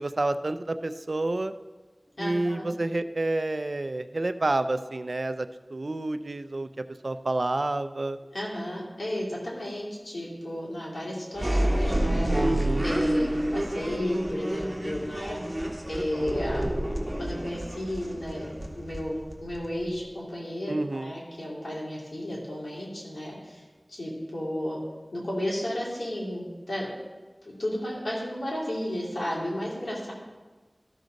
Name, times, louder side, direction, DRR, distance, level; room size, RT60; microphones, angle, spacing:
voice 1, 0.0-1.5 2.2-8.2 12.4-12.9 20.7-21.2, right 2 dB, 70° right, 12 dB, 0.4 m, -29 dB
voice 2, 2.2-2.7 8.3-12.3 12.8-15.4 15.9-16.7 17.2-23.6 23.9-24.8 25.1-26.9 27.4-30.1, left 1 dB, 80° left, -5 dB, 2.8 m, -33 dB
sound 1, 11.3-20.0, right 1 dB, 20° right, 1.5 m, -29 dB
13.0 x 6.3 x 4.0 m, 1.3 s
wide cardioid pair, 45°, 0 cm